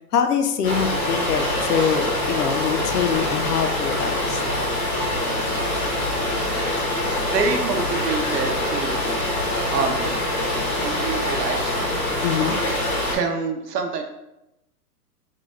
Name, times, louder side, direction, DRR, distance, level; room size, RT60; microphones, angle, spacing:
voice 1, 0.1-4.6 12.2-12.6, left 7 dB, 70° left, 7 dB, 0.6 m, -24 dB
sound 1, 0.6-13.2, left 1 dB, 20° left, 0.6 m, -24 dB
voice 2, 7.1-9.0 9.7-10.1 10.8-12.0 13.1-14.0, right 4 dB, 70° right, 4 dB, 0.8 m, -26 dB
4.0 x 2.2 x 3.1 m, 0.90 s
hypercardioid pair, 135°, 49 cm